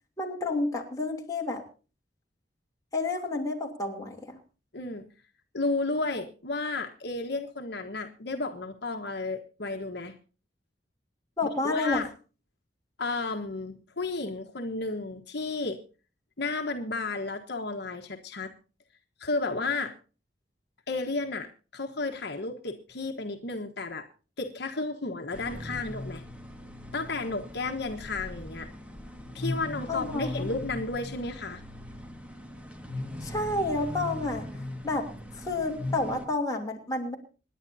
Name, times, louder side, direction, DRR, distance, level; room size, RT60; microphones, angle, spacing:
voice 1, 0.2-1.6 2.9-4.4 11.4-12.0 29.9-30.5 33.2-34.5 34.8-35.1 35.3-37.2, left 2 dB, 20° left, 0 dB, 3.0 m, -30 dB
voice 2, 4.7-5.1 5.5-10.1 11.6-12.1 13.0-15.8 16.4-18.5 19.2-19.9 20.9-24.1 24.4-26.2 26.9-28.7 29.3-31.6, left 3 dB, 65° left, 4 dB, 1.3 m, -32 dB
sound 1, 25.3-36.3, left 1 dB, 10° right, 1.8 m, -39 dB
26.5 x 10.5 x 2.7 m, 0.35 s
head